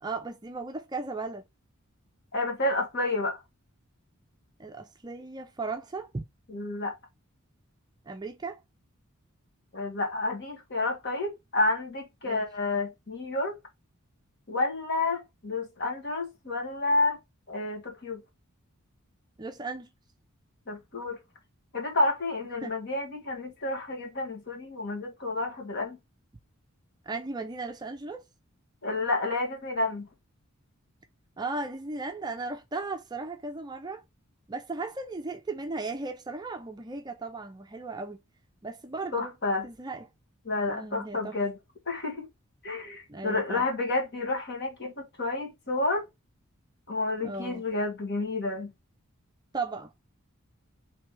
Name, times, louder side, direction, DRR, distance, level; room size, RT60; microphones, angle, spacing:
voice 1, 0.0-1.4 4.6-6.3 8.1-8.6 12.2-12.4 19.4-19.9 22.6-22.7 27.1-28.2 31.4-34.0 34.5-38.2 38.6-39.3 39.6-40.1 40.7-41.4 43.1-43.7 47.2-47.6 49.5-49.9, right 3 dB, 20° right, 0.5 m, -36 dB
voice 2, 2.3-3.4 6.5-7.0 9.7-13.5 14.5-17.2 17.5-18.2 20.7-21.2 21.7-26.0 28.8-30.1 39.1-39.7 40.5-41.5 41.9-42.3 42.6-46.1 46.9-48.7, left 2 dB, 55° left, 1.8 m, -30 dB
3.3 x 3.3 x 4.5 m
head